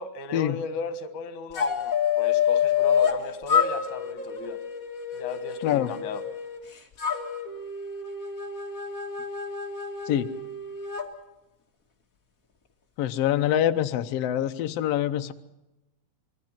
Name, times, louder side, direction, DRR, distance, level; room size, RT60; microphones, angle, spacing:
voice 1, 0.0-4.6 5.1-6.2, left 4 dB, 65° left, 2.8 m, -36 dB
sound 1, 1.5-3.2 3.5-6.6 7.0-11.1, left 8 dB, 30° left, 1.9 m, -27 dB
voice 2, 13.0-15.3, left 11 dB, 85° left, 1.3 m, -25 dB
26.5 x 22.0 x 5.9 m
omnidirectional pair, 4.0 m